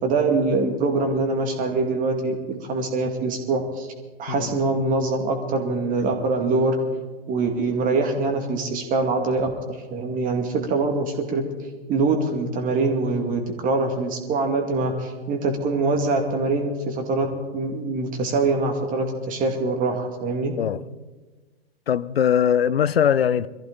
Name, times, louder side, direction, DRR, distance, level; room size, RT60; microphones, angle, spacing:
voice 1, 0.0-3.9 4.2-6.8 7.3-11.4 11.9-17.3 17.5-20.6, right 3 dB, 25° right, 2.2 m, -24 dB
voice 2, 21.9-23.5, left 8 dB, 70° left, 0.6 m, -21 dB
22.0 x 14.5 x 3.9 m
figure-of-eight pair, 100°, 32 cm